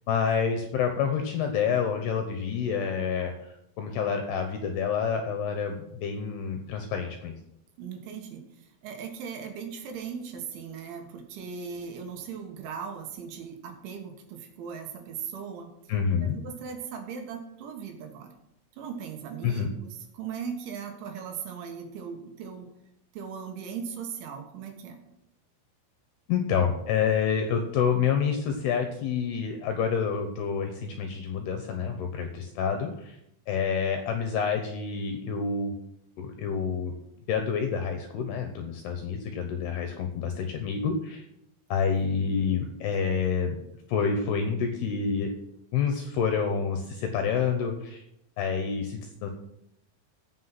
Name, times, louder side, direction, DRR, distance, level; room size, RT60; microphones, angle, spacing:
voice 1, 0.1-7.3 15.9-16.4 19.4-19.7 26.3-33.2 33.5-35.7 36.2-36.9 37.3-41.3 41.7-43.6 43.9-45.3 45.7-48.0 48.4-49.3, left 6 dB, 75° left, 6 dB, 2.5 m, -28 dB
voice 2, 7.8-15.7 16.2-18.3 18.7-22.7 23.1-25.0, right 6 dB, 75° right, 4 dB, 3.7 m, -38 dB
15.5 x 5.9 x 5.9 m, 0.79 s
omnidirectional pair, 5.7 m